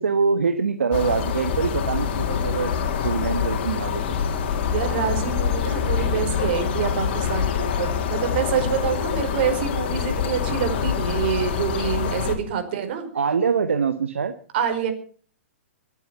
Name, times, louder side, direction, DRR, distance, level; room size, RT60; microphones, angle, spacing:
voice 1, 0.0-2.7 3.0-4.2 13.1-14.3, right 5 dB, 75° right, 9 dB, 1.4 m, -24 dB
sound 1, 0.9-12.4, left 7 dB, 50° left, 3.2 m, -25 dB
voice 2, 4.7-13.1 14.5-14.9, right 8 dB, 50° right, 7 dB, 4.8 m, -26 dB
24.5 x 9.2 x 5.7 m, 0.42 s
figure-of-eight pair, 115°, 7 cm